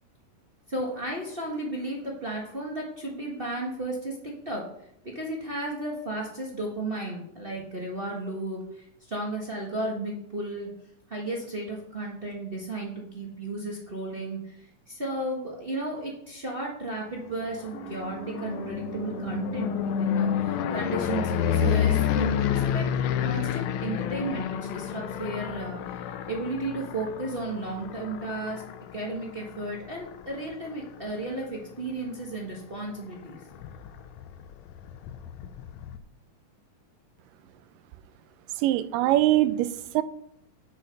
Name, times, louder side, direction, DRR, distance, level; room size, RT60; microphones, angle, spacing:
voice 1, 0.7-4.7 5.0-10.7 11.1-22.9 23.2-26.0 26.3-28.6 28.9-33.4, right 2 dB, 50° right, -3 dB, 0.6 m, -34 dB
sound 1, 17.4-31.3 31.8-32.3 32.5-32.6 32.9-33.0 33.2-36.0, left 9 dB, 75° left, 1.7 m, -30 dB
Piano, 17.7-27.7 28.0-28.1, right 5 dB, 65° right, 2.5 m, -44 dB
voice 2, 38.6-40.0, right 14 dB, 90° right, 14 dB, 2.2 m, -23 dB
9.6 x 6.6 x 5.3 m, 0.73 s
omnidirectional pair, 3.8 m